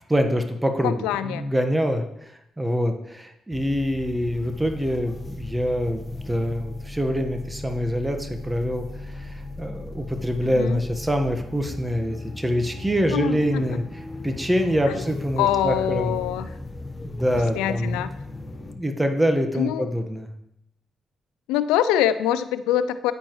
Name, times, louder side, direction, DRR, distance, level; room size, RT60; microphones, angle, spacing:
voice 1, 0.1-0.9 1.2-2.0 2.6-13.8 14.2-16.1 17.0-18.0 18.7-20.3, equal, 15° right, 5 dB, 1.2 m, -25 dB
voice 2, 0.8-1.4 10.5-10.8 13.1-13.8 14.9-15.0 15.4-16.5 17.5-18.1 19.6-19.9 21.5-23.1, left 11 dB, 85° left, 13 dB, 0.4 m, -24 dB
sound 1, 3.5-18.8, left 2 dB, 20° left, 1.1 m, -37 dB
9.5 x 8.7 x 3.1 m, 0.81 s
supercardioid pair, 50°, 0 cm